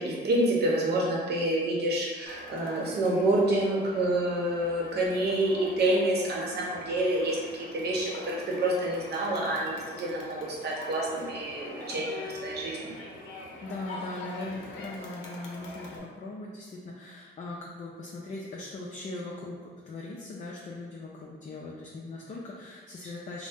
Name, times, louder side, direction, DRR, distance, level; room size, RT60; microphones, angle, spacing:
voice 1, 0.0-12.9, right 1 dB, 55° right, -3 dB, 0.8 m, -28 dB
Crowd, 2.3-16.0, left 2 dB, 80° left, 0.6 m, -44 dB
voice 2, 13.6-23.5, left 2 dB, 40° left, -3 dB, 0.4 m, -40 dB
2.7 x 2.0 x 3.4 m, 1.5 s
cardioid pair, 90°, 20 cm